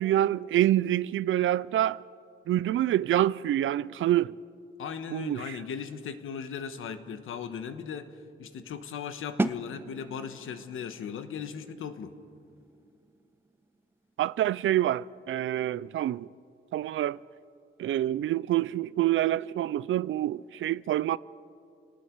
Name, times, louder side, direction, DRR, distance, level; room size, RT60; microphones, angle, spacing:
voice 1, 0.0-2.0 2.5-4.4 5.1-5.6 14.2-16.3 16.7-17.2 17.8-21.2, right 13 dB, 75° right, 0.5 m, -26 dB
voice 2, 4.8-12.2, left 7 dB, 80° left, 1.3 m, -38 dB
sound 1, 9.4-15.1, right 2 dB, 10° right, 0.6 m, -38 dB
30.0 x 19.0 x 4.7 m
wide cardioid pair, 140°, 21 cm